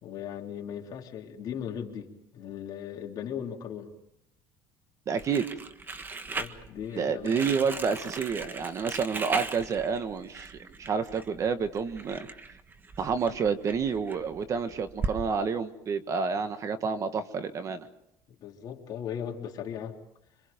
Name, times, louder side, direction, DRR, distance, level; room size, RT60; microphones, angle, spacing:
voice 1, 0.0-3.9 6.4-7.7 18.3-20.0, left 8 dB, 50° left, 1 dB, 3.4 m, -38 dB
voice 2, 5.1-5.4 7.0-12.3 13.0-17.9, right 6 dB, 40° right, 10 dB, 1.6 m, -29 dB
Crumpling crinkling, 5.2-15.2, right 4 dB, 25° right, 1.6 m, -38 dB
26.5 x 26.0 x 5.3 m, 0.81 s
cardioid pair, 120°, 9 cm